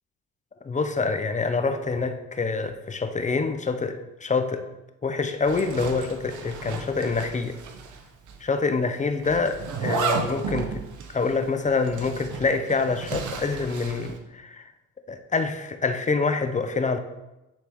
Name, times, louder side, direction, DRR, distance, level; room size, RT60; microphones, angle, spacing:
voice 1, 0.6-4.6 5.0-7.6 8.4-10.9 11.1-14.6 15.1-17.0, left 4 dB, 25° left, 8 dB, 0.6 m, -26 dB
Zipper (clothing), 5.4-8.0 8.3-8.4 9.2-14.2, right 5 dB, 75° right, 0.8 m, -33 dB
9.8 x 3.5 x 3.0 m, 0.98 s
cardioid pair, 90°, 30 cm